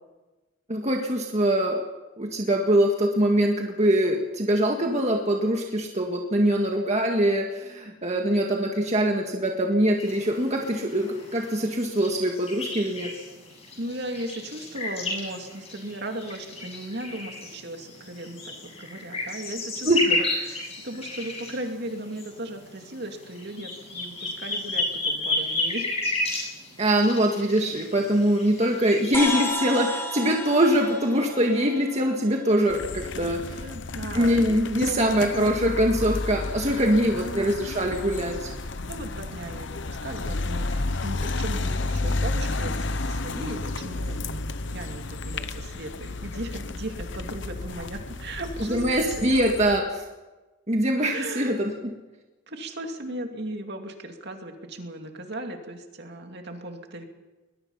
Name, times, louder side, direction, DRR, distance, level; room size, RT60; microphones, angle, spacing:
voice 1, 0.7-1.8 2.2-13.1 19.9-20.0 26.8-33.6 34.2-38.5 48.7-50.0 50.7-51.7, right 1 dB, 35° right, 1 dB, 1.8 m, -23 dB
sound 1, 10.0-29.5, left 2 dB, 30° left, 8.0 m, -33 dB
voice 2, 13.8-25.9 33.6-34.5 34.8-35.1 36.8-37.6 38.9-49.5 51.1-51.5 52.5-57.0, right 1 dB, 55° right, 4 dB, 2.6 m, -37 dB
sound 2, 29.1-32.9, left 2 dB, 10° left, 4.8 m, -32 dB
sound 3, 32.7-49.8, left 2 dB, 60° left, 1.0 m, -32 dB
21.5 x 21.0 x 5.7 m, 1.2 s
head